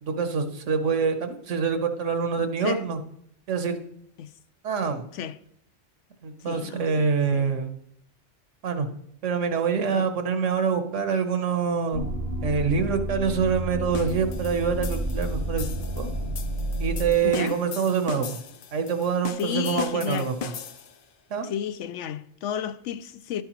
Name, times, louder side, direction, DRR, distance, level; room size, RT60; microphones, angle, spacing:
voice 1, 0.0-3.0 3.5-3.8 4.6-5.0 6.2-7.8 8.6-8.9 9.2-12.1 12.4-16.1 16.8-18.4 18.7-20.3 21.3-21.5, right 6 dB, 90° right, 1.3 m, -25 dB
voice 2, 2.4-2.8 4.2-4.3 5.1-5.4 6.4-7.6 9.9-10.1 17.2-17.6 19.4-20.3 21.4-23.4, left 9 dB, 85° left, 0.9 m, -33 dB
sound 1, 11.9-17.1, equal, 75° right, 3.6 m, -30 dB
sound 2, 13.9-21.0, left 6 dB, 55° left, 0.7 m, -39 dB
11.5 x 8.8 x 3.0 m
omnidirectional pair, 1.2 m